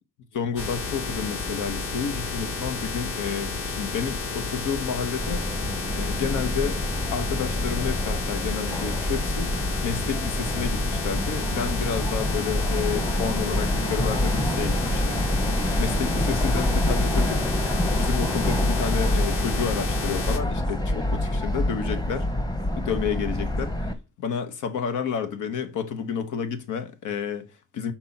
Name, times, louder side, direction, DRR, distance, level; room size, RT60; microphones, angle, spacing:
voice 1, 0.3-5.5 5.9-6.8 7.1-9.5 9.8-15.2 15.8-17.4 17.9-22.4 22.8-23.8 24.2-27.9, left 7 dB, 80° left, 1.2 m, -30 dB
sound 1, 0.6-20.4, left 4 dB, 45° left, 1.4 m, -31 dB
Subway metro underground, 5.2-23.9, left 1 dB, 15° left, 1.0 m, -26 dB
6.0 x 4.3 x 5.8 m
cardioid pair, 90°, 30 cm